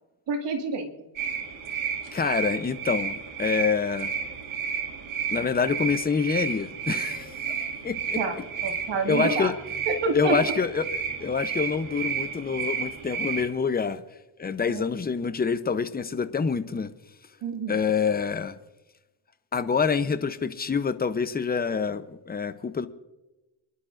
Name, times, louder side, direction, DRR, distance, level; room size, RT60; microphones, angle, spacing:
voice 1, 0.3-0.9 8.2-8.3 8.6-9.5 9.9-10.4 14.7-14.8 17.4-17.8, right 4 dB, 60° right, 2.2 m, -28 dB
sound 1, 1.2-13.5, right 7 dB, 80° right, 2.4 m, -32 dB
voice 2, 2.1-4.1 5.3-8.2 9.1-9.5 10.1-14.0 14.4-16.9 17.7-18.6 19.5-22.9, left 5 dB, 20° left, 0.7 m, -27 dB
29.5 x 11.5 x 2.6 m
cardioid pair, 105°, 47 cm